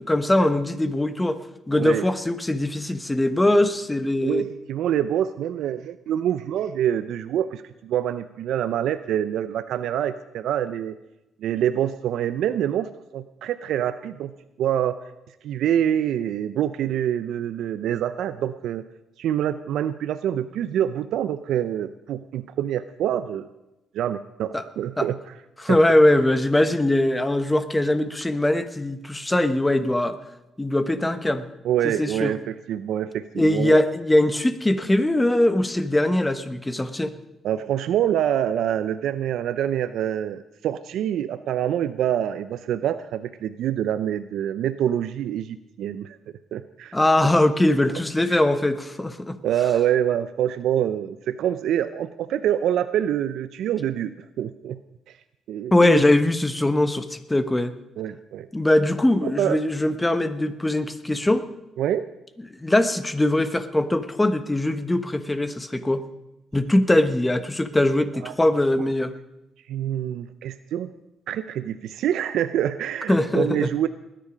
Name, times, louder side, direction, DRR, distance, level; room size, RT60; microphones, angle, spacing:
voice 1, 0.0-1.4 1.7-4.4 24.5-24.6 25.0-25.1 25.6-30.2 30.6-31.5 31.8-32.3 33.4-37.1 46.9-49.4 55.7-57.7 58.5-61.5 62.6-66.0 66.5-69.1 73.1-73.7, left 1 dB, 15° left, 11 dB, 1.1 m, -21 dB
voice 2, 1.7-2.0 4.2-11.0 11.4-14.3 14.6-15.0 15.4-18.8 19.2-23.5 23.9-25.2 25.7-25.8 31.6-33.8 37.4-46.2 46.5-47.0 48.3-48.4 49.4-54.8 55.1-55.2 55.5-56.0 58.0-58.5 59.2-59.6 61.8-62.0 68.2-68.3 69.7-70.9 71.3-73.9, right 10 dB, 80° right, 12 dB, 0.5 m, -26 dB
20.0 x 10.0 x 5.1 m, 0.94 s
cardioid pair, 90°, 0 cm